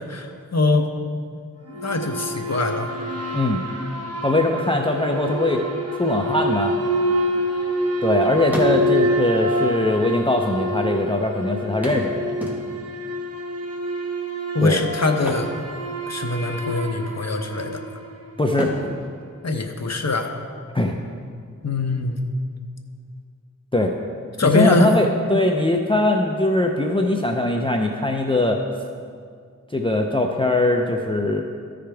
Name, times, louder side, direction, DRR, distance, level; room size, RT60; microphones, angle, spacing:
voice 1, 0.1-0.9 1.7-2.9 14.5-15.5 16.1-17.8 19.4-20.3 21.6-22.2 24.4-24.9, left 2 dB, 50° left, 4 dB, 0.8 m, -22 dB
sound 1, 1.7-18.3, right 1 dB, 45° right, 1.1 m, -27 dB
voice 2, 4.2-5.6 5.9-6.7 8.0-12.4 14.6-14.8 18.4-18.7 20.7-20.9 23.7-23.9 24.4-28.6 29.7-31.4, left 2 dB, 15° left, 2 dB, 0.5 m, -21 dB
sound 2, 7.1-8.1 8.4-9.3 10.2-10.3 10.5-10.6 11.8-13.0 15.1-16.4 16.6-16.9 17.4-18.0 18.5-20.3 22.2-22.3 22.8-22.9, equal, 5° right, 1.5 m, -33 dB
14.0 x 5.0 x 3.5 m, 2.1 s
wide cardioid pair, 50°, 33 cm